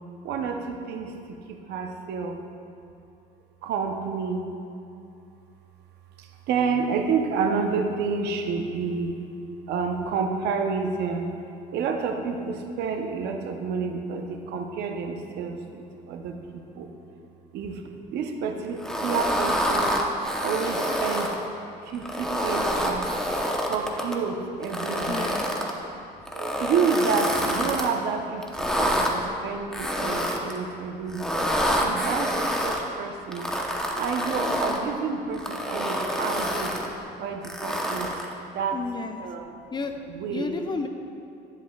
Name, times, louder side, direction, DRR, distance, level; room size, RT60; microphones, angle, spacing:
voice 1, 0.2-2.4 3.6-4.5 6.2-9.2 9.7-11.3 11.7-16.9 17.5-17.8 18.1-19.9 20.4-21.3 21.8-23.1 23.7-25.2 25.9-26.1 26.3-31.3 31.8-33.5 34.0-36.8 37.2-38.1 38.5-38.8 39.2-39.5 40.1-40.5, right 5 dB, 80° right, 4 dB, 0.8 m, -29 dB
sound 1, 18.8-21.4 21.9-24.2 24.6-25.7 26.3-27.9 28.4-29.1 29.7-30.6 31.1-32.8 33.3-34.8 35.3-36.9 37.4-38.3, equal, 5° left, 0.9 m, -27 dB
voice 2, 25.0-25.5 38.7-39.2 39.7-39.9 40.3-40.9, left 4 dB, 25° left, 6 dB, 0.5 m, -31 dB
10.5 x 10.5 x 2.4 m, 2.7 s
cardioid pair, 110°, 17 cm